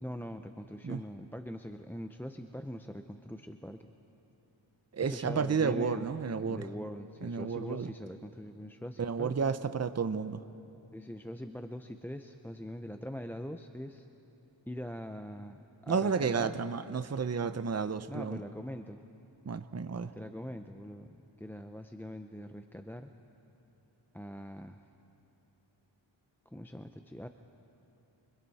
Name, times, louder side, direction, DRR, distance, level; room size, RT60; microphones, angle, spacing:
voice 1, 0.0-3.9 5.0-6.1 6.4-9.3 10.9-14.1 14.7-16.6 18.1-19.0 20.1-23.1 24.1-24.8 26.5-27.3, equal, 5° left, 7 dB, 0.6 m, -42 dB
voice 2, 4.9-6.7 7.2-7.9 9.0-10.4 15.9-18.4 19.5-20.1, right 5 dB, 35° right, 11 dB, 0.7 m, -31 dB
29.5 x 25.0 x 4.2 m, 2.9 s
wide cardioid pair, 65°, 47 cm